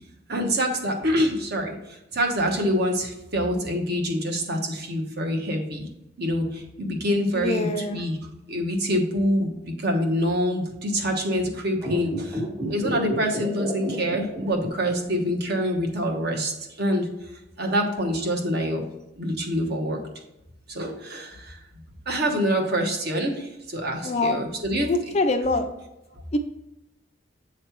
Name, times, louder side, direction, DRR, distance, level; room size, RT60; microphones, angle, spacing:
voice 1, 0.3-5.9 6.2-8.2 8.5-17.1 17.6-18.9 19.2-20.0 20.7-21.6 22.1-24.9 26.1-26.2, equal, 50° right, 2 dB, 1.1 m, -26 dB
voice 2, 7.3-8.0 24.0-24.4 24.9-25.6 26.3-26.4, left 2 dB, 35° left, 6 dB, 0.4 m, -24 dB
sound 1, 11.7-15.2 15.4-15.5, right 1 dB, 25° right, 0.8 m, -31 dB
8.0 x 3.2 x 4.4 m, 0.91 s
head